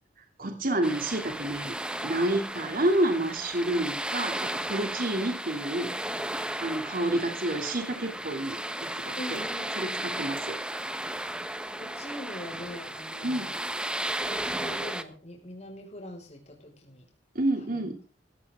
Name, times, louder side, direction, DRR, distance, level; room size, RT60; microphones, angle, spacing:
voice 1, 0.4-1.8 2.0-5.9 6.3-9.4 9.8-10.6 13.2-13.5 17.3-18.0, right 1 dB, 50° right, 4 dB, 2.9 m, -29 dB
sound 1, 0.8-15.0, right 1 dB, 5° right, 1.1 m, -34 dB
voice 2, 9.2-10.3 11.7-13.5 14.2-17.0 17.7-17.9, left 1 dB, 40° left, 0 dB, 5.5 m, -43 dB
16.0 x 16.0 x 3.7 m, 0.36 s
head